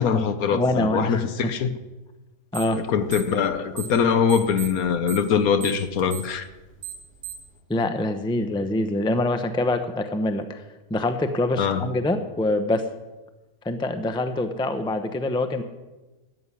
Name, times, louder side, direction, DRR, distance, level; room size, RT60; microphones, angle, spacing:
voice 1, 0.0-1.7 2.8-6.5 11.6-11.8, left 6 dB, 70° left, 1.3 m, -23 dB
voice 2, 0.5-1.5 2.5-2.8 7.7-10.6 10.9-12.8 13.6-15.6, left 2 dB, 5° left, 0.5 m, -25 dB
sound 1, 2.5-2.8 3.1-4.0 4.3-7.5, right 11 dB, 30° right, 3.0 m, -37 dB
13.5 x 7.6 x 9.9 m
omnidirectional pair, 1.7 m